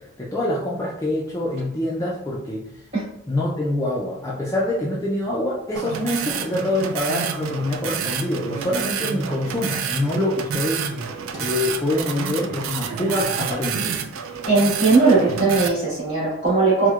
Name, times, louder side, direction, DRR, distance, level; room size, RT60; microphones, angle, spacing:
voice 1, 0.0-2.8 3.3-14.0, left 1 dB, 15° left, -5 dB, 0.3 m, -25 dB
sound 1, 5.8-15.7, right 7 dB, 85° right, 0.3 m, -29 dB
voice 2, 14.5-16.9, right 3 dB, 30° right, -8 dB, 1.4 m, -18 dB
4.4 x 2.1 x 2.3 m, 0.78 s
head